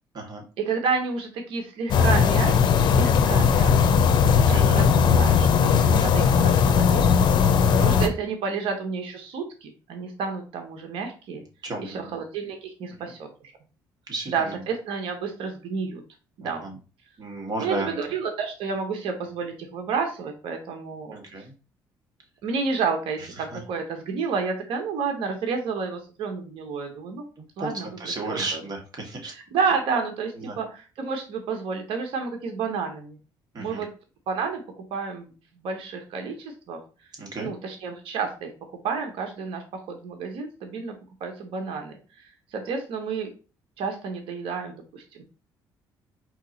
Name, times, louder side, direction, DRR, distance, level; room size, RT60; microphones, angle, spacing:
voice 1, 0.6-4.3 4.7-7.1 7.7-11.4 11.8-13.3 14.3-16.0 16.4-16.6 17.6-21.2 22.4-27.3 27.6-28.6 29.2-33.2 33.6-33.9 34.3-34.6 34.9-35.3 35.6-36.8 37.4-38.5 38.8-41.9 42.5-43.3 43.8-45.2, right 5 dB, 75° right, 4 dB, 1.0 m, -30 dB
sound 1, 1.9-8.1, left 6 dB, 60° left, 0.6 m, -18 dB
voice 2, 4.3-4.8 7.6-7.9 11.6-12.1 14.1-14.6 16.4-16.8 17.2-18.0 21.1-21.5 23.4-23.6 27.6-29.3 30.4-30.6 33.5-33.8 37.2-37.5, right 2 dB, 45° right, 1 dB, 1.8 m, -34 dB
4.5 x 2.8 x 4.0 m, 0.34 s
cardioid pair, 80°, 9 cm